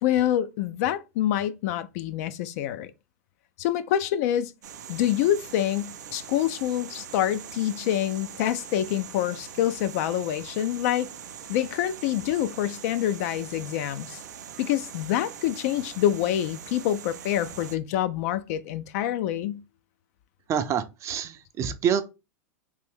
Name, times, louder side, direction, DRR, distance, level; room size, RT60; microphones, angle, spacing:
voice 1, 0.0-2.9 3.6-4.5 4.9-11.1 11.5-14.2 14.6-19.6, left 11 dB, 60° left, 0.4 m, -26 dB
sound 1, 4.6-17.8, right 8 dB, 85° right, 0.5 m, -42 dB
voice 2, 20.5-22.0, right 8 dB, 35° right, 0.4 m, -27 dB
3.3 x 2.6 x 3.4 m
hypercardioid pair, 110°, 9 cm